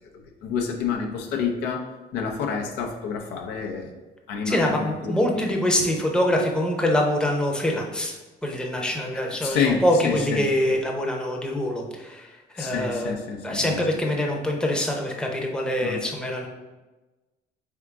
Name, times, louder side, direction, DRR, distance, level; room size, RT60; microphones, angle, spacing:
voice 1, 0.4-1.8 2.1-3.9 4.3-5.5 9.4-10.4 12.6-13.8 15.8-16.0, left 6 dB, 85° left, 2 dB, 0.6 m, -28 dB
voice 2, 4.5-8.2 8.4-12.3 12.5-13.1 13.4-16.5, left 1 dB, 5° left, 0 dB, 0.7 m, -24 dB
3.7 x 3.6 x 3.5 m, 1.2 s
cardioid pair, 110°, 17 cm